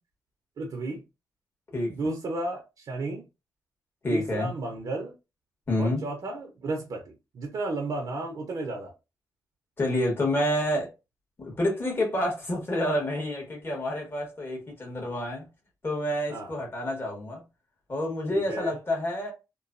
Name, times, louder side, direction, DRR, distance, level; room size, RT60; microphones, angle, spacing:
voice 1, 0.6-1.0 1.9-3.2 4.1-5.1 5.8-8.9 16.3-16.5 18.3-18.7, right 2 dB, 65° right, 0.8 m, -33 dB
voice 2, 4.0-4.5 5.7-6.0 9.8-10.9 11.4-15.5 15.8-17.4 17.9-19.3, left 1 dB, 35° left, 1.4 m, -28 dB
3.0 x 2.2 x 2.5 m
cardioid pair, 80°, 7 cm